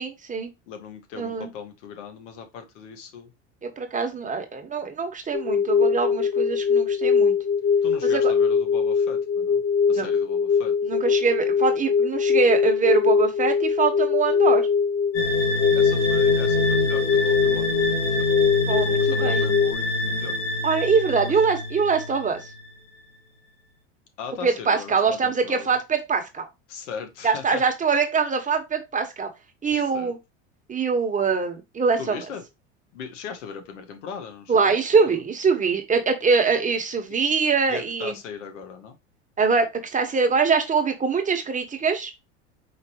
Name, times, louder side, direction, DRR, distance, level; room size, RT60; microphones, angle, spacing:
voice 1, 0.0-0.5 1.2-1.5 3.6-7.3 8.0-8.3 9.9-10.1 10.9-14.7 18.7-19.4 20.6-22.4 24.4-26.5 27.2-29.3 29.6-30.2 30.7-32.2 34.5-38.2 39.4-39.6 39.9-42.1, right 5 dB, 20° right, 1.1 m, -23 dB
voice 2, 0.7-3.3 7.8-9.6 9.9-10.7 15.7-18.3 19.0-20.4 21.2-21.3 24.2-25.7 26.7-27.6 29.9-30.1 32.0-32.4 32.9-35.2 37.7-39.0, left 6 dB, 80° left, 1.3 m, -38 dB
sound 1, 5.3-19.7, left 6 dB, 20° left, 0.5 m, -22 dB
sound 2, 15.1-22.7, left 1 dB, 60° left, 2.5 m, -26 dB
4.9 x 3.2 x 2.8 m
hypercardioid pair, 100°, 36 cm